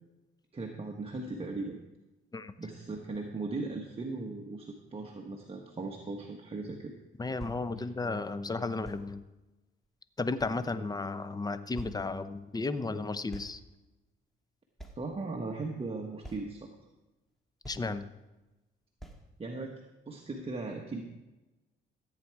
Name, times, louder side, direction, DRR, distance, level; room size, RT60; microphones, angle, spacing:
voice 1, 0.5-1.8 2.6-6.9 15.0-16.7 19.4-21.0, right 3 dB, 30° right, 1 dB, 1.3 m, -38 dB
voice 2, 7.2-9.2 10.2-13.6 17.6-18.1, left 3 dB, 20° left, 12 dB, 0.8 m, -34 dB
sound 1, 7.4-7.6 8.8-9.1 9.8-9.9 10.4-11.0 11.4-11.5 11.8-12.0 13.3-13.6 13.9-14.0 14.8-15.0 15.7-15.8 16.2-16.6 17.3-17.4 17.6-18.0 18.4-18.5 19.0-19.2 19.8-19.9, right 1 dB, ahead, 1.7 m, -46 dB
14.5 x 8.6 x 4.8 m, 1.1 s
cardioid pair, 90°, 20 cm